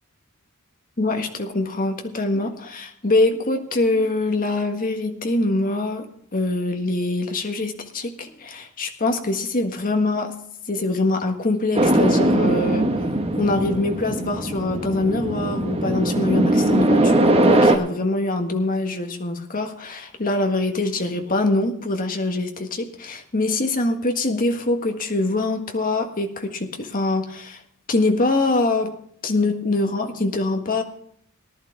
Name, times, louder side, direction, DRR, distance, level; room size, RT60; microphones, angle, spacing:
voice 1, 1.0-10.3 10.7-12.9 13.4-27.6 27.9-28.9 29.2-30.8, left 2 dB, 40° left, 4 dB, 1.6 m, -24 dB
sound 1, 11.8-17.8, right 1 dB, 25° right, 1.3 m, -20 dB
19.0 x 11.5 x 3.4 m, 0.66 s
head